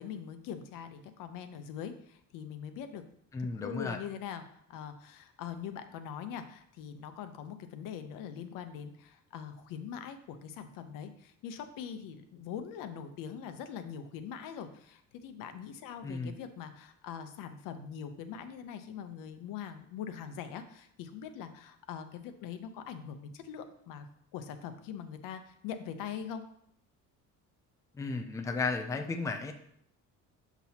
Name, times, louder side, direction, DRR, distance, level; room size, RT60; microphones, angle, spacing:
voice 1, 0.0-3.0 3.4-4.4 4.7-24.1 24.3-26.4, left 8 dB, 90° left, 9 dB, 0.8 m, -42 dB
voice 2, 3.3-4.0 16.0-16.3 28.0-29.5, left 4 dB, 10° left, 4 dB, 0.4 m, -34 dB
7.0 x 6.1 x 2.8 m, 0.69 s
cardioid pair, 175°, 31 cm